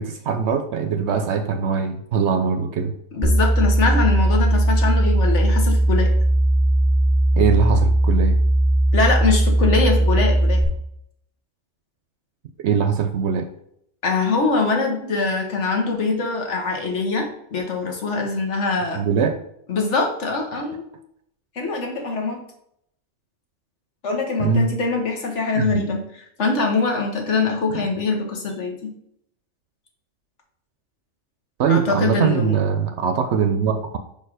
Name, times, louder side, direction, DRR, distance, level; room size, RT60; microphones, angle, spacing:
voice 1, 0.0-2.9 7.4-8.4 12.6-13.5 18.9-19.4 20.5-20.6 24.4-24.7 25.5-25.8 31.6-34.0, right 6 dB, 70° right, 7 dB, 0.8 m, -21 dB
voice 2, 3.1-6.1 8.9-10.6 14.0-19.0 19.7-20.8 21.6-22.4 24.0-26.0 26.4-28.9 31.7-32.6, left 3 dB, 70° left, 2 dB, 1.6 m, -23 dB
sound 1, 3.2-10.6, right 1 dB, 15° left, 1.5 m, -18 dB
5.4 x 4.5 x 4.8 m, 0.73 s
omnidirectional pair, 1.3 m